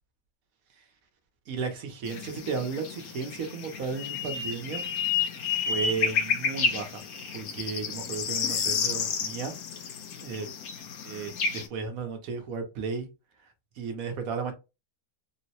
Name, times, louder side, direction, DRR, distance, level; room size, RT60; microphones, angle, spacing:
voice 1, 1.5-4.8 5.1-5.2 5.7-7.0 7.3-9.5 10.2-10.5 11.0-13.1 13.8-14.5, right 5 dB, 70° right, 1.1 m, -34 dB
sound 1, 2.0-11.7, left 6 dB, 70° left, 1.2 m, -31 dB
3.8 x 2.0 x 2.8 m
omnidirectional pair, 1.7 m